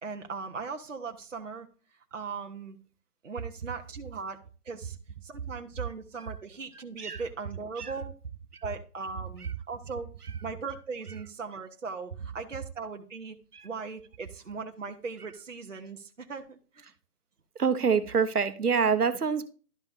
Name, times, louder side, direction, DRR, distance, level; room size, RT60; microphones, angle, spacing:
voice 1, 0.0-1.7 2.1-2.8 3.2-5.0 5.2-8.1 8.6-10.1 10.4-13.4 13.6-16.9, right 4 dB, 55° right, 0.9 m, -39 dB
voice 2, 17.5-19.5, right 6 dB, 75° right, 1.1 m, -26 dB
12.0 x 5.3 x 2.5 m
figure-of-eight pair, 180°, 46 cm